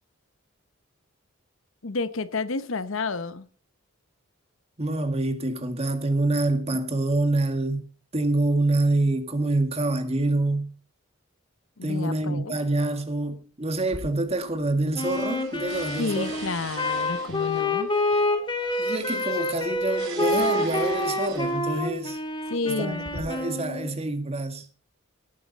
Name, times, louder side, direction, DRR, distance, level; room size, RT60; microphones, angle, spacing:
voice 1, 1.8-3.5 11.8-12.5 16.0-17.9 22.5-23.1, left 3 dB, 70° left, 0.9 m, -30 dB
voice 2, 4.8-7.9 8.1-10.7 11.8-16.4 18.8-22.2 22.7-24.7, right 2 dB, 30° right, 2.0 m, -26 dB
sound 1, 13.8-14.7 15.0-21.8 22.6-23.2, right 3 dB, 65° right, 6.1 m, -41 dB
Wind instrument woodwind instrument, 14.9-23.9, left 2 dB, 20° left, 2.2 m, -27 dB
18.5 x 8.9 x 4.1 m
head